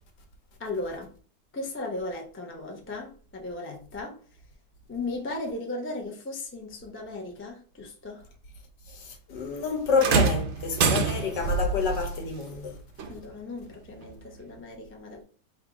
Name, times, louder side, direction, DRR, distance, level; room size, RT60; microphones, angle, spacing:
voice 1, 0.6-1.1 1.5-4.2 4.9-8.3 13.0-15.2, left 2 dB, 15° left, 0.4 m, -36 dB
voice 2, 8.9-12.8, left 4 dB, 75° left, 1.6 m, -28 dB
sound 1, 10.0-11.5 13.0-13.1 14.0-14.1, right 6 dB, 70° right, 0.6 m, -25 dB
3.7 x 2.6 x 4.7 m
omnidirectional pair, 1.9 m